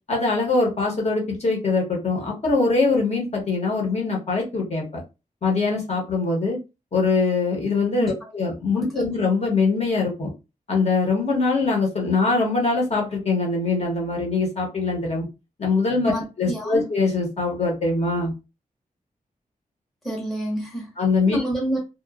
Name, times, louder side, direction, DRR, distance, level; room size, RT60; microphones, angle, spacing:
voice 1, 0.1-4.9 5.4-6.6 6.9-10.3 10.7-15.3 15.6-18.3 21.0-21.4, left 3 dB, 50° left, 1.0 m, -23 dB
voice 2, 16.1-16.8 20.0-20.9 21.3-21.8, right 1 dB, ahead, 0.8 m, -28 dB
2.9 x 2.2 x 2.3 m
wide cardioid pair, 175°, 14 cm